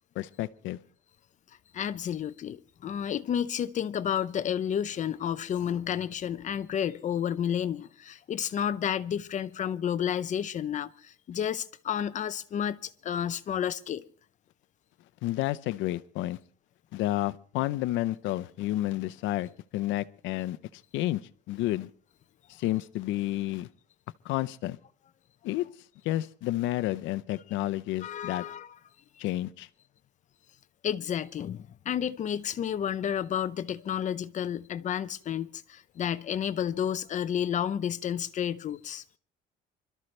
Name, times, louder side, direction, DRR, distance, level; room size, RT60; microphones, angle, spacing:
voice 1, 0.2-0.8 15.2-16.4 16.9-21.2 21.5-21.9 22.6-23.7 24.2-24.8 25.4-25.7 26.0-28.4 29.2-29.7, left 16 dB, 80° left, 0.7 m, -30 dB
voice 2, 1.7-14.1 28.0-28.7 29.2-29.3 30.8-39.0, left 9 dB, 40° left, 0.7 m, -31 dB
26.0 x 13.0 x 3.3 m
cardioid pair, 145°, 19 cm